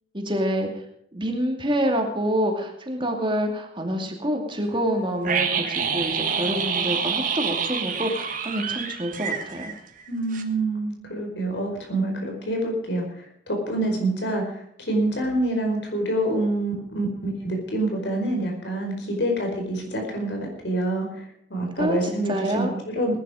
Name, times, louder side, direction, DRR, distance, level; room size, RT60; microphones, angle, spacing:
voice 1, 0.1-0.7 1.1-9.7 21.8-22.7, equal, 30° right, 3 dB, 2.6 m, -27 dB
sound 1, 5.2-10.1 10.3-10.4, right 6 dB, 50° right, 1.7 m, -27 dB
voice 2, 10.1-21.2 21.5-23.2, right 1 dB, 80° left, 2 dB, 4.8 m, -26 dB
19.5 x 10.5 x 5.1 m, 0.70 s
head